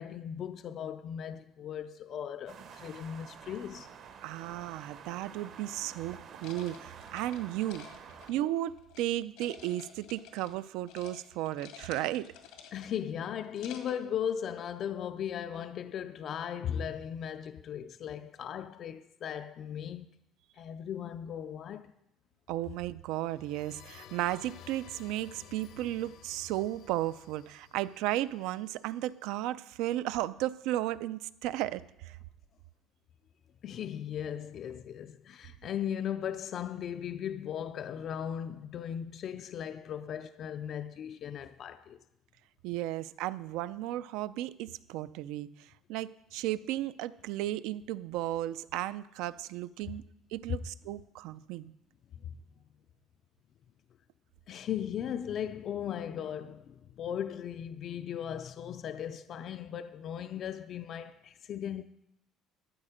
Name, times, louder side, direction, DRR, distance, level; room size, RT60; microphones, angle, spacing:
voice 1, 0.0-3.9 12.7-20.1 20.6-21.9 33.6-42.0 50.5-50.6 52.2-52.4 54.5-61.8, left 9 dB, 35° left, 0.3 m, -37 dB
sound 1, 2.5-8.3, right 7 dB, 40° right, 0.8 m, -49 dB
voice 2, 4.2-7.9 8.3-12.3 22.5-32.2 42.6-50.0 50.3-51.7, right 14 dB, 75° right, 0.4 m, -34 dB
sound 2, 6.4-9.0 9.4-10.6 10.9-11.2 11.5-13.0 13.4-14.0, left 8 dB, 90° left, 1.8 m, -51 dB
sound 3, 23.2-28.9, left 10 dB, 55° left, 0.7 m, -54 dB
12.5 x 8.9 x 5.0 m
cardioid pair, 180°, 0 cm